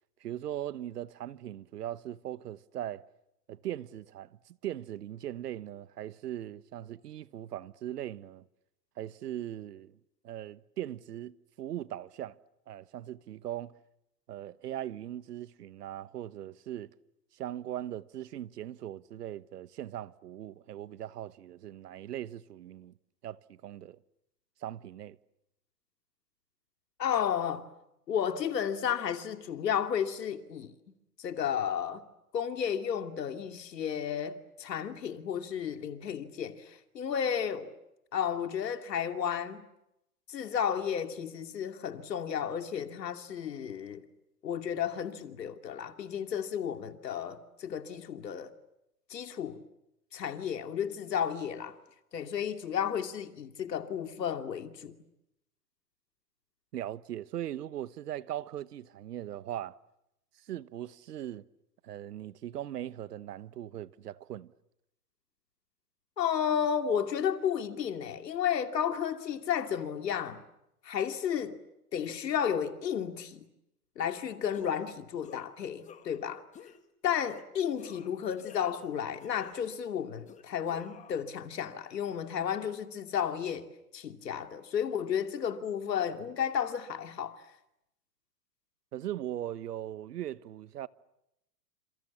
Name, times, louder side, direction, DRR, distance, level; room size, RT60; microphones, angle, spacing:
voice 1, 0.2-3.1 3.5-8.4 9.0-10.0 10.2-12.4 12.7-13.8 14.3-16.9 17.3-22.9 23.2-24.0 24.6-25.2 56.7-59.8 60.4-61.4 61.8-64.5 88.9-90.9, right 12 dB, 65° right, 1.3 m, -39 dB
voice 2, 27.0-27.7 28.1-30.7 31.2-32.0 32.3-37.7 38.1-39.7 40.3-44.0 44.4-48.5 49.1-49.6 50.1-51.8 52.1-55.0 66.2-70.4 70.8-71.6 71.9-73.4 74.0-76.4 77.0-87.4, left 8 dB, 75° left, 2.7 m, -33 dB
sound 1, 74.0-74.2 74.5-74.9 75.2-75.5 75.8-76.2 76.5-76.8 77.3-77.5 77.8-78.9 79.2-79.8 80.3-81.2, left 8 dB, 15° left, 1.6 m, -51 dB
29.5 x 27.0 x 7.3 m
hypercardioid pair, 135°, 50 cm